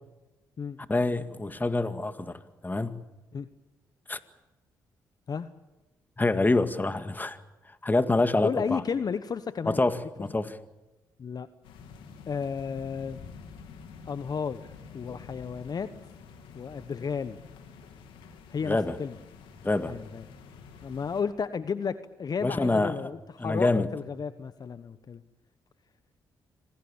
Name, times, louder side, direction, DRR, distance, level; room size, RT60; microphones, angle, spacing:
voice 1, 0.9-2.4 2.6-3.0 4.1-4.2 6.2-7.4 7.8-8.8 9.7-10.6 18.6-19.0 19.6-20.0 22.4-23.0 23.4-23.9, left 2 dB, 20° left, 10 dB, 2.0 m, -26 dB
voice 2, 8.4-9.8 11.2-11.5 12.3-13.2 14.1-14.6 14.9-15.9 16.5-17.4 18.5-19.2 19.9-20.2 20.8-25.2, left 6 dB, 50° left, 13 dB, 1.1 m, -33 dB
sound 1, 11.6-21.2, left 5 dB, 80° left, 3.2 m, -48 dB
26.0 x 17.5 x 8.7 m, 1.1 s
supercardioid pair, 50°, 9 cm